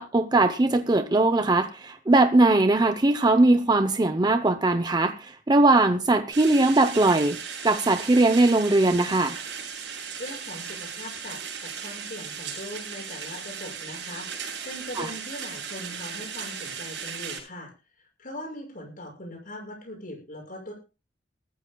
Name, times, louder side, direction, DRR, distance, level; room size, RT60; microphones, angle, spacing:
voice 1, 0.0-7.4 7.6-9.4 15.0-15.1, right 2 dB, 25° right, 9 dB, 0.7 m, -20 dB
sound 1, 6.3-17.4, right 7 dB, 70° right, 7.8 m, -37 dB
voice 2, 10.2-14.3 14.6-17.7 18.0-20.7, left 1 dB, 50° left, 1 dB, 6.5 m, -40 dB
22.5 x 14.0 x 2.3 m, 0.31 s
head